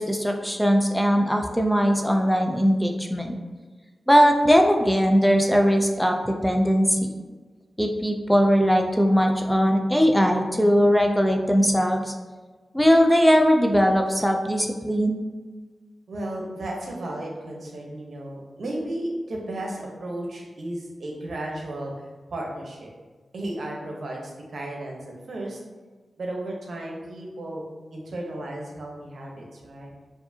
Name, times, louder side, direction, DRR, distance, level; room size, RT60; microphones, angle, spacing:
voice 1, 0.0-3.4 4.1-7.1 7.8-12.1 12.7-15.2, equal, 5° left, 3 dB, 0.4 m, -20 dB
voice 2, 16.1-21.9 22.3-22.9 23.3-25.0 25.3-25.6 26.2-27.6 27.9-29.9, right 1 dB, 70° right, -1 dB, 0.8 m, -34 dB
4.6 x 2.6 x 2.7 m, 1.3 s
cardioid pair, 55°, 0 cm